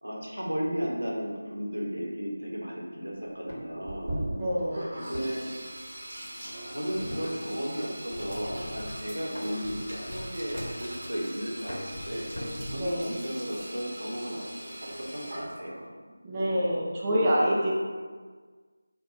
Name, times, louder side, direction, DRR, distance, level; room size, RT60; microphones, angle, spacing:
voice 1, 0.0-4.2 4.9-5.4 6.7-12.3 12.7-14.5 15.0-15.9, equal, 80° right, -3 dB, 0.7 m, -34 dB
sound 1, 3.3-3.8 5.1-6.2 7.0-7.8 8.1-8.5 9.3-9.8 10.5-11.2 11.7-13.1, equal, 85° left, 0.8 m, -40 dB
Sink (filling or washing), 3.8-15.9, right 1 dB, 45° right, 0.8 m, -40 dB
voice 2, 4.3-4.9 12.7-13.2 16.2-17.8, equal, 15° right, -8 dB, 0.3 m, -27 dB
sound 2, 8.1-9.0 9.6-10.9 11.4-11.6 11.9-12.2 12.6-12.9 13.6-13.7, left 1 dB, 50° left, 0.5 m, -42 dB
2.4 x 2.2 x 3.8 m, 1.5 s
figure-of-eight pair, 165°, 0 cm